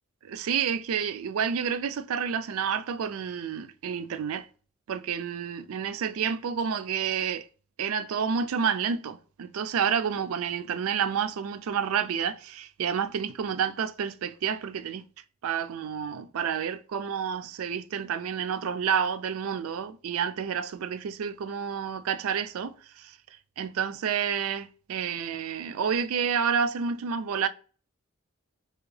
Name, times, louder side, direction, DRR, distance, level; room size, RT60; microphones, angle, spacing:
voice 1, 0.2-4.5 4.9-7.5 7.8-15.0 15.4-23.2 23.6-27.5, right 7 dB, 85° right, 0.4 m, -29 dB
3.5 x 2.8 x 3.2 m
head